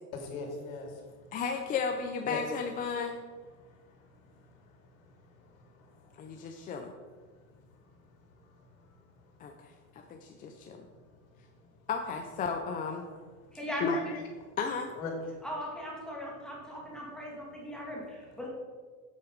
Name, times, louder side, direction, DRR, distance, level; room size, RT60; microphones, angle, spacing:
voice 1, 0.1-1.3 2.2-2.4 3.6-6.6 8.4-8.5 8.8-8.9 10.0-10.1 15.0-15.1, left 5 dB, 90° left, 2 dB, 2.6 m, -43 dB
voice 2, 1.3-3.2 6.2-6.9 9.4-9.7 10.1-10.9 11.9-13.0 13.8-14.2 14.6-14.9, left 5 dB, 20° left, 4 dB, 0.5 m, -34 dB
voice 3, 13.5-14.2 15.4-18.5, equal, ahead, -4 dB, 1.8 m, -39 dB
8.1 x 7.9 x 5.1 m, 1.5 s
supercardioid pair, 145°, 40 cm